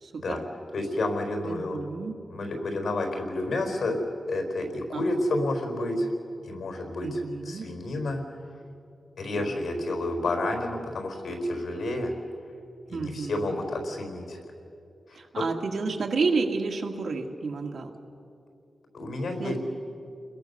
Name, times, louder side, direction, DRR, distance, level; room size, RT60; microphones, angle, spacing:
voice 1, 0.0-0.4 1.4-2.2 4.9-5.0 7.0-7.7 9.3-9.6 12.9-13.6 15.1-17.9 19.4-19.6, right 4 dB, 75° right, 2 dB, 2.1 m, -31 dB
voice 2, 0.7-1.8 2.3-4.0 4.3-6.1 6.4-7.2 7.4-8.2 9.2-12.1 12.9-14.4 15.1-15.4 18.9-19.6, left 2 dB, 80° left, 4 dB, 4.5 m, -30 dB
30.0 x 21.5 x 6.9 m, 2.6 s
wide cardioid pair, 170°, 0 cm